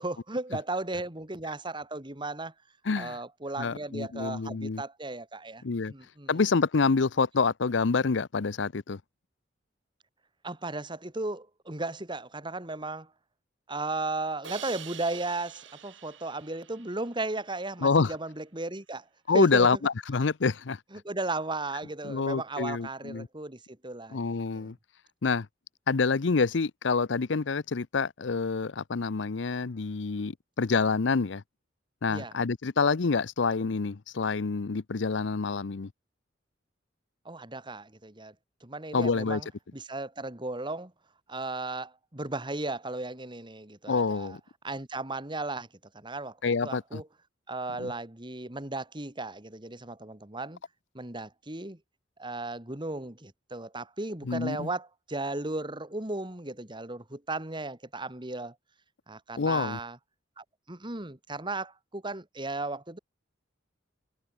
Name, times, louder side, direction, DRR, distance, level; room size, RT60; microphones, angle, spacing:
voice 1, 0.0-2.5 3.0-6.3 10.4-13.1 13.7-19.1 19.3-19.7 20.9-24.2 24.5-24.7 32.1-32.3 37.2-38.3 38.6-39.5 39.7-40.9 41.3-44.4 44.6-45.7 45.9-47.1 47.5-50.6 50.9-51.8 52.2-58.5 59.1-60.0 60.4-63.0, right 2 dB, 25° right, 2.6 m, -35 dB
voice 2, 2.8-3.2 3.6-4.8 5.6-5.9 6.3-9.0 17.8-18.1 19.3-20.8 22.0-23.3 24.1-24.8 25.2-25.5 25.9-31.4 32.0-35.9 38.9-39.4 43.9-44.4 46.4-47.0 47.8-47.9 54.2-54.7 59.4-59.8, left 4 dB, 70° left, 0.7 m, -27 dB
Crash cymbal, 14.4-17.5, right 9 dB, 80° right, 5.6 m, -46 dB
head